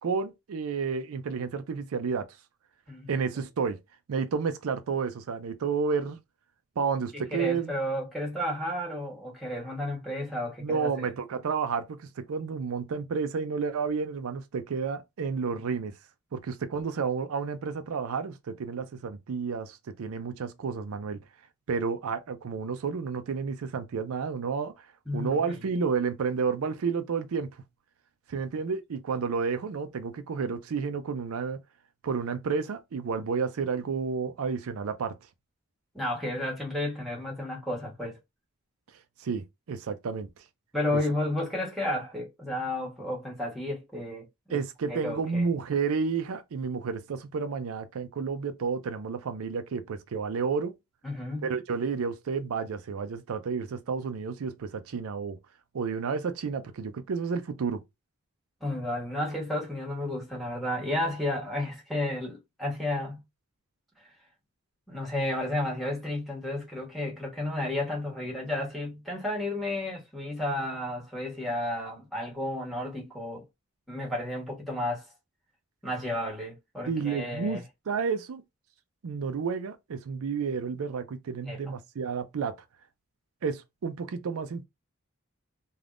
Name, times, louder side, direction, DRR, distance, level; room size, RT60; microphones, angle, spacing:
voice 1, 0.0-2.3 3.1-3.8 4.1-6.2 6.8-7.7 10.6-15.9 16.3-21.2 21.7-24.7 25.1-27.5 28.3-31.6 32.0-35.1 39.2-40.3 40.9-41.0 44.5-50.7 51.4-55.4 55.7-57.8 76.9-78.4 79.0-82.6 83.4-84.7, right 5 dB, 75° right, 0.4 m, -31 dB
voice 2, 7.1-11.1 25.1-25.6 35.9-38.2 40.7-44.6 44.9-45.5 51.0-51.5 58.6-63.2 64.9-73.4 73.9-75.0 75.8-77.6 81.5-81.6, left 1 dB, ahead, 1.1 m, -32 dB
3.4 x 2.3 x 2.4 m
head